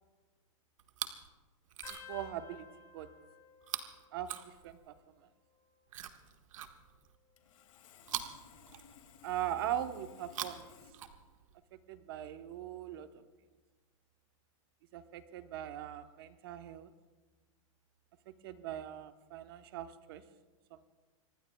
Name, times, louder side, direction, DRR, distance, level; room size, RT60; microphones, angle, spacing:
Chewing mastication, 0.8-1.3 1.7-2.3 3.6-5.0 5.9-7.2 8.0-9.3 10.2-11.6 12.5-12.6, right 10 dB, 75° right, 1.3 m, -44 dB
sound 1, 1.8-5.0 5.3-5.9 6.9-8.4 9.0-9.3 10.5-10.9 12.4-12.5, left 7 dB, 20° left, 1.9 m, -57 dB
voice 1, 2.1-2.6 2.9-3.1 4.1-4.9 9.2-10.7 11.7-13.2 14.9-16.9 18.3-20.2 20.7-20.9, right 11 dB, 45° right, 9 dB, 1.0 m, -40 dB
Sawing, 7.4-10.9, left 9 dB, 75° left, 2.2 m, -59 dB
25.5 x 21.0 x 2.3 m, 1.3 s
supercardioid pair, 175°, 17 cm